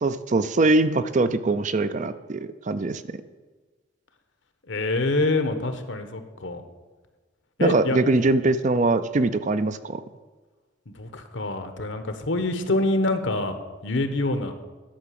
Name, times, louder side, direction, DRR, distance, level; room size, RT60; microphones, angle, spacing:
voice 1, 0.0-3.0 7.6-10.0, right 2 dB, 40° right, 12 dB, 0.5 m, -22 dB
voice 2, 4.7-6.6 7.6-8.0 10.9-13.6 13.8-14.5, left 2 dB, 70° left, 8 dB, 1.1 m, -26 dB
11.5 x 5.8 x 7.6 m, 1.3 s
head